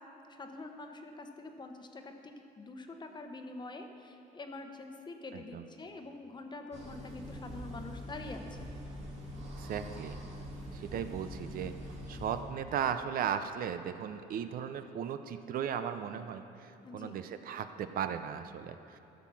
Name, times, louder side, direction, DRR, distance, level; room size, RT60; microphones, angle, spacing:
voice 1, 0.3-8.7 10.9-11.0 16.8-17.2, left 2 dB, 25° left, 5 dB, 1.0 m, -45 dB
sound 1, 6.7-12.5, equal, 40° right, 2.3 m, -44 dB
voice 2, 9.6-10.2 10.7-11.7 12.1-19.0, right 8 dB, 60° right, 9 dB, 0.5 m, -36 dB
14.0 x 5.8 x 6.1 m, 2.9 s
cardioid pair, 110°, 17 cm